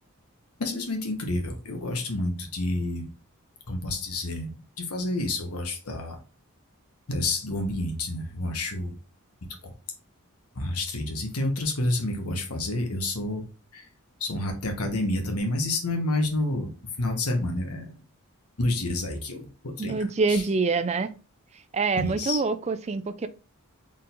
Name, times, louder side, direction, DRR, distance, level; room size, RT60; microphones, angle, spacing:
voice 1, 0.6-3.1 3.7-4.5 4.8-6.2 7.1-8.9 9.6-9.7 10.5-13.5 13.7-13.9 14.2-16.7 17.0-17.9 18.6-20.0 20.3-20.4 22.0-22.4, left 2 dB, 90° left, 1.2 m, -29 dB
voice 2, 19.8-21.1 21.7-23.3, right 4 dB, 30° right, 0.3 m, -25 dB
4.3 x 3.8 x 2.5 m
head